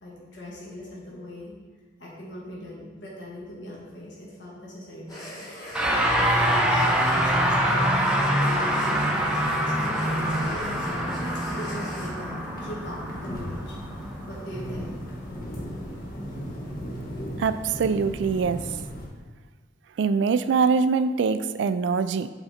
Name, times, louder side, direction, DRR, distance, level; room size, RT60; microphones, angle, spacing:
voice 1, 0.0-1.5 2.0-11.1 11.5-13.7 14.3-14.9, left 1 dB, 65° left, -5 dB, 1.7 m, -40 dB
sound 1, 5.1-12.1, left 1 dB, 20° left, 1.6 m, -41 dB
sound 2, 5.7-15.2, equal, 5° right, 0.7 m, -25 dB
sound 3, 10.0-19.1, equal, 50° left, 1.2 m, -37 dB
voice 2, 17.4-18.6 20.0-22.3, right 5 dB, 65° right, 12 dB, 0.3 m, -23 dB
7.9 x 3.9 x 4.2 m, 1.3 s
head